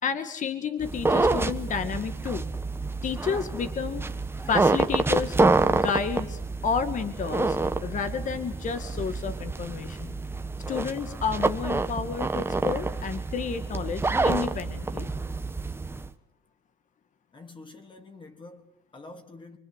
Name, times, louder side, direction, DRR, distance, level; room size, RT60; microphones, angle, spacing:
voice 1, 0.0-2.4 3.0-4.1 4.5-5.4 5.7-10.1 10.7-15.1, left 6 dB, 50° left, 2.1 m, -31 dB
sound 1, 0.8-16.1, right 3 dB, 15° right, 1.4 m, -27 dB
voice 2, 17.3-19.6, left 2 dB, 30° left, 3.4 m, -47 dB
24.5 x 24.5 x 8.3 m
cardioid pair, 110°, 17 cm